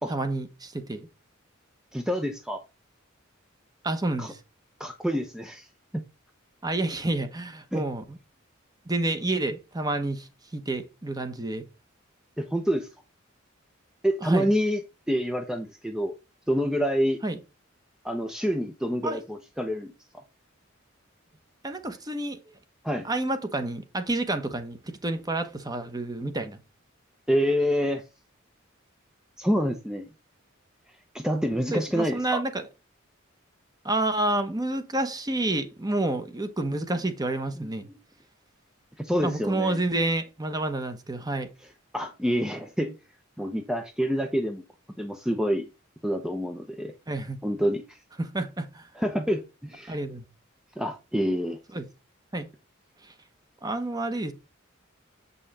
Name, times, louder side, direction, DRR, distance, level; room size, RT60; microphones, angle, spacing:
voice 1, 0.1-1.1 3.8-4.4 6.6-8.2 8.9-11.6 14.2-14.5 17.2-17.4 19.0-19.2 21.6-22.4 23.0-26.6 31.7-32.7 33.8-37.9 39.2-41.5 47.1-47.4 48.2-48.9 49.9-50.3 51.7-51.8 52.3-52.5 53.0-53.1 53.6-54.3, right 2 dB, 20° right, 1.0 m, -29 dB
voice 2, 1.9-2.6 4.2-4.3 4.8-5.7 5.9-6.0 7.7-7.9 12.4-12.9 14.0-14.8 15.1-16.1 16.5-17.2 18.0-19.9 22.8-23.1 27.3-28.0 29.4-30.1 31.1-32.4 37.6-38.0 39.0-39.8 41.9-42.9 43.4-44.6 45.0-45.7 46.0-46.9 47.4-48.0 49.0-50.0 50.8-51.6, equal, 5° right, 0.7 m, -27 dB
7.8 x 5.5 x 4.2 m
head